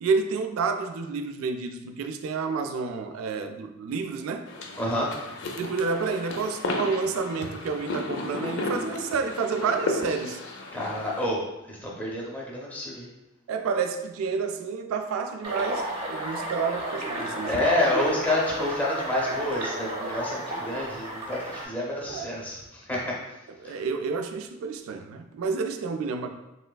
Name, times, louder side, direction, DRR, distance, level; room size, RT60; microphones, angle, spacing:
voice 1, 0.0-4.5 5.6-10.4 13.5-17.6 22.1-22.3 23.6-26.3, right 5 dB, 75° right, 7 dB, 0.3 m, -29 dB
sound 1, 4.5-11.3, left 2 dB, 60° left, 0.4 m, -34 dB
voice 2, 4.8-5.1 10.7-13.1 17.3-23.0 23.6-23.8, left 1 dB, 10° left, -4 dB, 0.6 m, -28 dB
sound 2, 15.4-21.6, right 1 dB, 25° right, 0.7 m, -32 dB
3.2 x 3.1 x 2.2 m, 0.96 s
head